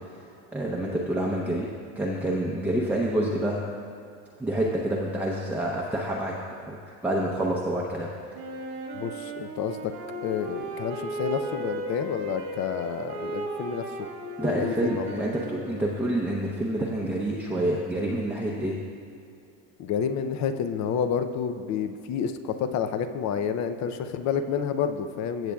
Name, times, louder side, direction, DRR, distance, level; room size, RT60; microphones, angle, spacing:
voice 1, 0.5-3.6 4.4-6.3 6.7-6.8 7.0-8.1 14.4-18.8, right 1 dB, 5° right, -4 dB, 0.7 m, -27 dB
Wind instrument woodwind instrument, 8.3-16.3, right 2 dB, 80° right, 1.7 m, -36 dB
voice 2, 8.9-9.9 10.2-13.9 14.4-15.2 19.8-25.5, left 7 dB, 40° left, 9 dB, 0.6 m, -29 dB
15.5 x 7.5 x 2.3 m, 2.5 s
supercardioid pair, 115°, 41 cm